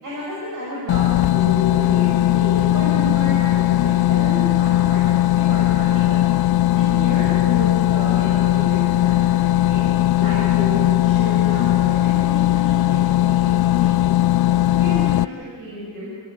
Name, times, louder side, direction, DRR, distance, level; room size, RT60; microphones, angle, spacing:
voice 1, 0.0-6.2 6.7-9.8 10.1-14.0 14.5-16.1, left 1 dB, 60° right, -5 dB, 5.8 m, -31 dB
sound 1, 0.9-15.2, left 14 dB, 80° left, 0.5 m, -18 dB
28.0 x 16.5 x 8.7 m, 2.2 s
wide cardioid pair, 170°, 36 cm